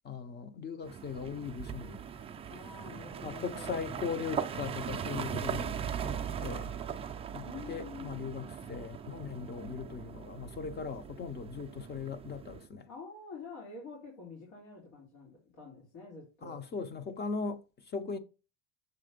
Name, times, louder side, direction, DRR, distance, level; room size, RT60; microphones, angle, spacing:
voice 1, 0.0-2.0 3.2-5.9 6.4-6.7 7.3-12.9 16.4-18.2, left 5 dB, 25° left, 0.6 m, -39 dB
sound 1, 0.8-12.7, right 7 dB, 15° right, 0.3 m, -39 dB
voice 2, 2.5-4.0 7.4-8.5 12.9-16.7, left 4 dB, 90° left, 3.0 m, -48 dB
6.9 x 3.3 x 5.1 m
cardioid pair, 130°, 39 cm